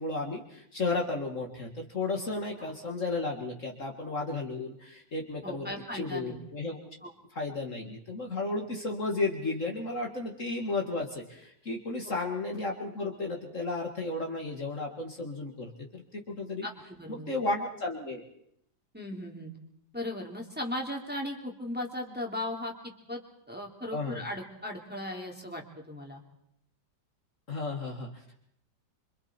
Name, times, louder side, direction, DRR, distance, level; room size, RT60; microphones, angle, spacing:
voice 1, 0.0-6.9 7.3-16.7 17.1-18.2 23.9-24.2 27.5-28.4, left 3 dB, 45° left, 1 dB, 2.4 m, -33 dB
voice 2, 5.4-6.4 7.0-7.1 12.0-12.2 16.6-17.3 18.9-19.5 19.9-22.7 23.1-23.2 23.5-26.2, left 1 dB, 5° right, 0 dB, 3.0 m, -37 dB
26.5 x 25.5 x 4.5 m, 0.72 s
omnidirectional pair, 1.9 m